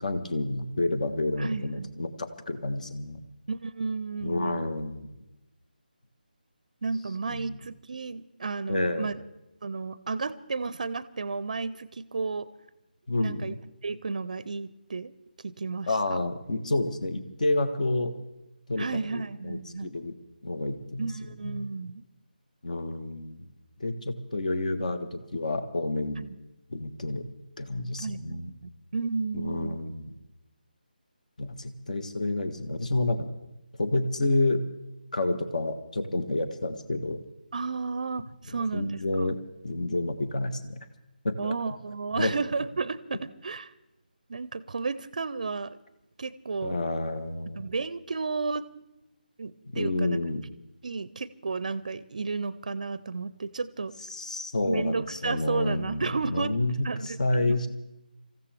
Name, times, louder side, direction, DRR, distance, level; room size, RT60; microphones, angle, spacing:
voice 1, 0.0-3.2 4.2-5.1 7.3-7.6 8.7-9.1 13.1-13.6 15.9-18.1 18.7-20.2 20.4-21.1 21.4-21.6 22.6-23.5 23.8-26.3 26.7-27.2 27.6-28.5 29.3-30.1 31.4-33.3 33.8-34.6 35.1-37.2 38.7-40.8 41.2-41.5 42.1-42.3 46.6-47.6 49.7-50.4 54.1-57.7, left 2 dB, 50° left, 10 dB, 1.4 m, -29 dB
voice 2, 1.4-1.9 3.5-4.6 6.8-9.1 9.6-12.5 13.2-13.5 13.8-15.1 15.4-16.2 18.8-19.9 21.0-22.0 26.2-26.4 28.0-29.8 37.5-39.3 41.4-43.7 44.3-45.8 46.2-46.8 47.6-48.7 49.4-50.2 50.8-53.9 54.6-56.6 56.8-57.6, right 4 dB, 50° right, 17 dB, 0.6 m, -33 dB
26.0 x 14.5 x 3.5 m, 0.92 s
figure-of-eight pair, 155°, 5 cm